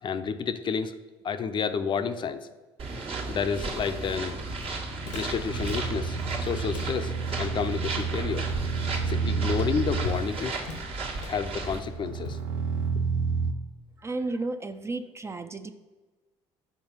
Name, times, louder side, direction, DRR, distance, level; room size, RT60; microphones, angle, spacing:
voice 1, 0.0-1.0 1.2-2.5 3.3-4.4 5.1-8.5 9.1-10.6 11.3-12.4 12.9-13.0, left 6 dB, 40° left, 10 dB, 0.5 m, -30 dB
sound 1, 2.8-11.8, right 3 dB, 50° right, 1.4 m, -35 dB
Walk footsteps, 3.9-13.2, left 6 dB, 75° left, 0.8 m, -42 dB
sound 2, 5.5-13.5, right 5 dB, 85° right, 0.5 m, -30 dB
voice 2, 14.0-15.7, right 2 dB, 20° right, 10 dB, 0.4 m, -33 dB
6.1 x 4.3 x 5.4 m, 1.3 s
supercardioid pair, 80°, 12 cm